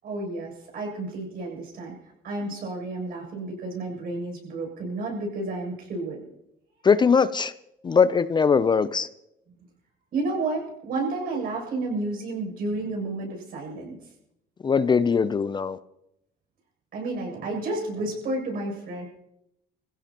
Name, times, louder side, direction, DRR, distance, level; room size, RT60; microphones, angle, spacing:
voice 1, 0.0-2.0 2.2-6.2 10.1-14.0 16.9-19.1, right 2 dB, 60° right, 0 dB, 7.6 m, -31 dB
voice 2, 6.8-7.5 7.8-9.1 14.6-15.8, left 5 dB, 25° left, 14 dB, 0.5 m, -21 dB
23.5 x 16.0 x 3.0 m, 0.81 s
cardioid pair, 110°, 17 cm